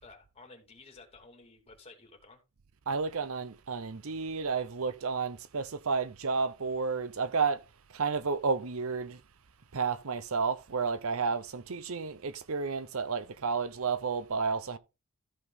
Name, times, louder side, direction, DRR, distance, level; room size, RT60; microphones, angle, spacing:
voice 1, 0.0-2.4, left 3 dB, 25° left, 3.0 m, -53 dB
voice 2, 2.9-7.6 7.9-9.2 9.7-14.8, right 5 dB, 65° right, 0.7 m, -31 dB
14.0 x 5.4 x 4.0 m
head